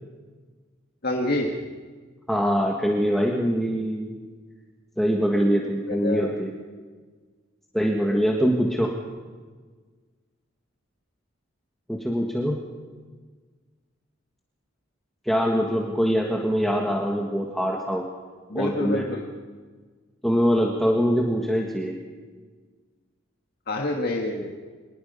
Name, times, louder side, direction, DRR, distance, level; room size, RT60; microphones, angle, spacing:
voice 1, 1.0-1.5 5.9-6.3 18.5-19.2 23.7-24.5, left 1 dB, 50° left, 1 dB, 1.8 m, -27 dB
voice 2, 2.3-4.2 5.0-6.5 7.7-8.9 11.9-12.6 15.2-18.0 18.5-19.1 20.2-22.0, equal, ahead, -1 dB, 1.7 m, -23 dB
25.5 x 20.0 x 5.6 m, 1.5 s
head